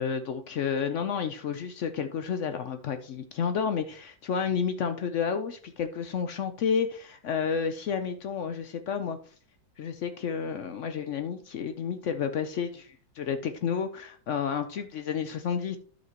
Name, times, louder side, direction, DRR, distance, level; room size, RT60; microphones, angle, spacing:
voice 1, 0.0-9.2 9.8-15.8, left 6 dB, 75° left, 8 dB, 0.7 m, -31 dB
12.0 x 5.8 x 2.9 m, 0.42 s
omnidirectional pair, 2.0 m